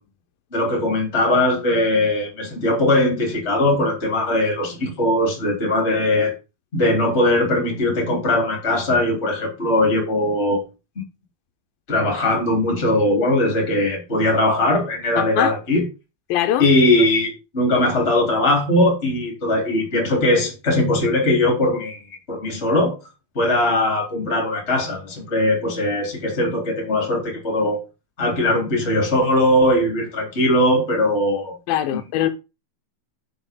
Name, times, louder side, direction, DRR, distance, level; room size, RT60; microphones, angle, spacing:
voice 1, 0.5-6.3 6.7-10.6 11.9-15.8 16.6-22.0 22.3-23.0 23.4-27.8 28.2-31.5, left 1 dB, 20° left, 3.7 m, -20 dB
voice 2, 15.2-15.5 16.3-16.7 31.7-32.3, left 12 dB, 90° left, 2.6 m, -22 dB
11.5 x 7.9 x 3.8 m
omnidirectional pair, 4.1 m